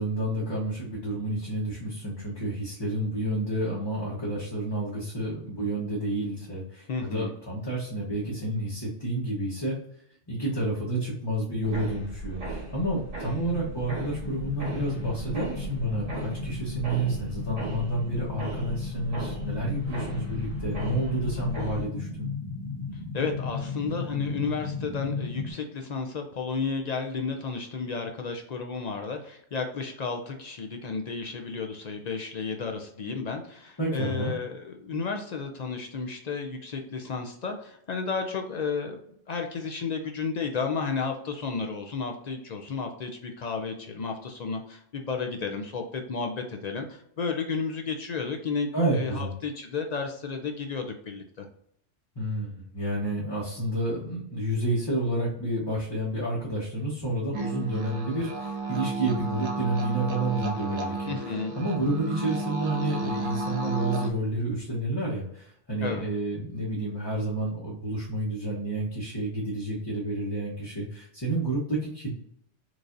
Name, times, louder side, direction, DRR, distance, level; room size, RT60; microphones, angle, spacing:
voice 1, 0.0-9.7 10.3-22.3 33.8-34.4 48.7-49.3 52.2-72.1, right 1 dB, 25° left, -7 dB, 0.9 m, -30 dB
voice 2, 6.9-7.3 23.1-39.0 39.3-51.5 61.1-61.5 65.8-66.1, left 5 dB, 60° left, 4 dB, 0.4 m, -32 dB
sound 1, 11.6-21.9, right 2 dB, 90° right, 1.8 m, -38 dB
sound 2, 13.5-25.5, left 4 dB, 80° left, 1.2 m, -35 dB
sound 3, 57.3-64.1, right 2 dB, 55° right, 0.8 m, -32 dB
4.6 x 2.5 x 2.5 m, 0.69 s
omnidirectional pair, 1.2 m